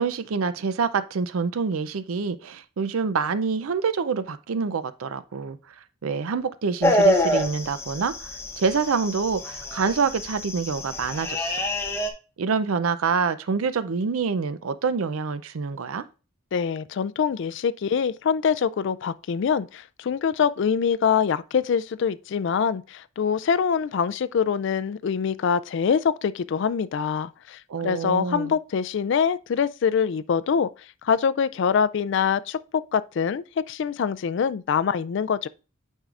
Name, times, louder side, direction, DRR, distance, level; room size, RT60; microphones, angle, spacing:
voice 1, 0.0-5.6 6.0-11.6 12.4-16.0 27.7-28.6, right 5 dB, 85° right, 0.5 m, -26 dB
sound 1, 6.8-12.1, left 1 dB, 10° left, 0.8 m, -26 dB
voice 2, 16.5-30.7 31.0-32.6 32.9-35.5, left 6 dB, 60° left, 0.3 m, -24 dB
8.9 x 5.4 x 2.4 m
head